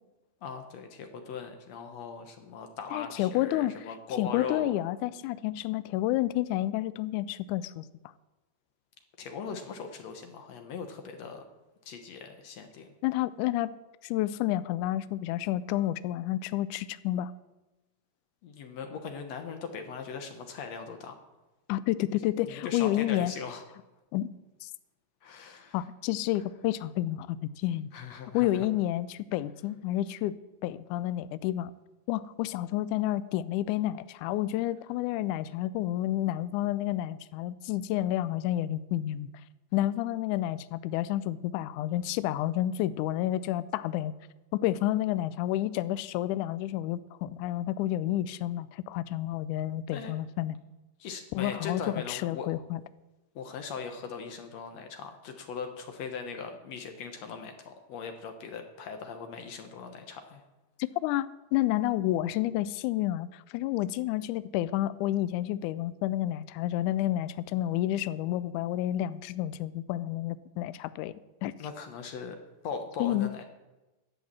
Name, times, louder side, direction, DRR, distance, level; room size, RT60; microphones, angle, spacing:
voice 1, 0.4-4.7 9.2-11.4 11.9-12.9 18.4-21.1 22.5-23.6 25.2-25.8 27.9-28.7 49.9-50.1 51.0-52.5 53.4-60.4 71.6-72.4 72.6-73.4, left 6 dB, 65° left, 6 dB, 1.7 m, -39 dB
voice 2, 2.9-3.7 4.2-7.9 13.0-13.7 14.0-17.3 21.7-23.3 24.1-24.3 24.6-24.7 25.7-27.9 28.3-30.4 30.6-31.7 32.1-39.3 39.7-44.1 44.5-50.6 51.3-52.8 60.8-71.5 73.0-73.3, left 14 dB, 85° left, 15 dB, 1.8 m, -30 dB
11.5 x 7.9 x 7.5 m, 1.1 s
omnidirectional pair, 4.0 m